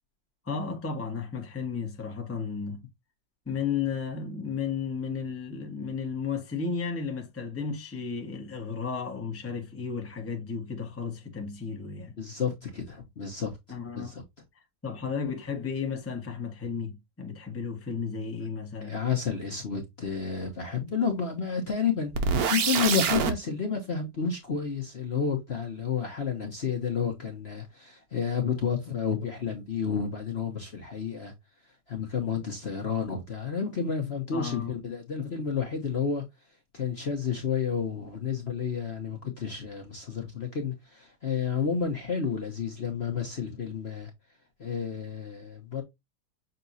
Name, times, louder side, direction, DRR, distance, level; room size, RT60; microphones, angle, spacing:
voice 1, 0.4-2.8 3.5-12.2 13.7-14.1 14.8-19.0 34.3-34.7, left 6 dB, 10° left, 0.9 m, -33 dB
voice 2, 12.2-13.5 14.0-14.2 18.8-31.3 31.9-36.2 36.7-44.1 44.6-45.8, left 6 dB, 40° left, 1.1 m, -31 dB
sound 1, 22.1-23.3, right 6 dB, 60° right, 1.3 m, -25 dB
6.7 x 2.9 x 2.6 m
omnidirectional pair, 2.0 m